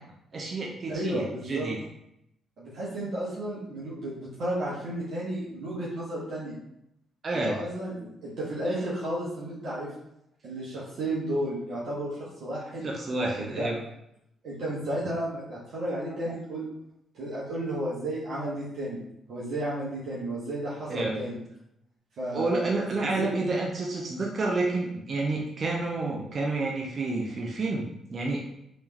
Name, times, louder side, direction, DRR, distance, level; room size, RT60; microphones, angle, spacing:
voice 1, 0.3-1.8 7.2-7.6 12.8-13.8 20.9-21.2 22.3-28.5, right 2 dB, 50° right, -1 dB, 0.7 m, -29 dB
voice 2, 0.9-1.7 2.6-6.6 7.3-9.9 10.4-12.9 13.4-13.7 14.4-16.6 17.1-19.0 19.3-21.4 22.2-23.3, right 1 dB, 70° right, -7 dB, 1.1 m, -33 dB
3.4 x 3.2 x 3.1 m, 0.78 s
supercardioid pair, 50°, 0 cm